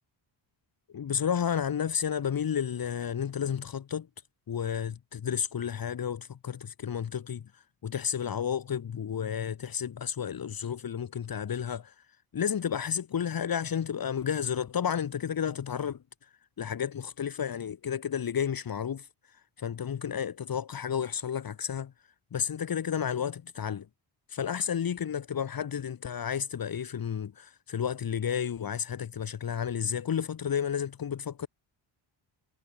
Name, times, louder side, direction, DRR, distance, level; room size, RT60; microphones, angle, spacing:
voice 1, 0.9-4.1 4.5-7.4 7.8-11.9 12.3-16.0 16.6-19.1 19.6-21.9 22.3-23.9 24.3-31.5, left 8 dB, 50° left, 3.0 m, -31 dB
cardioid pair, 135°, 46 cm